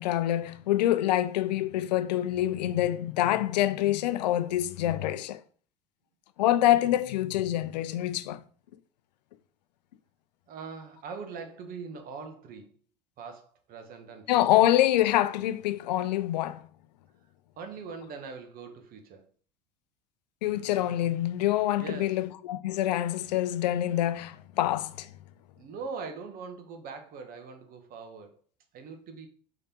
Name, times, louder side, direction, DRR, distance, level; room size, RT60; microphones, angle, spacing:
voice 1, 0.0-5.4 6.4-8.4 14.3-16.6 20.4-25.1, left 13 dB, 85° left, 0.4 m, -26 dB
voice 2, 10.5-12.7 13.2-14.7 17.6-19.2 21.7-22.2 25.6-28.4 28.7-29.3, right 5 dB, 45° right, 1.0 m, -42 dB
3.9 x 3.3 x 2.8 m
hypercardioid pair, 95°, 21 cm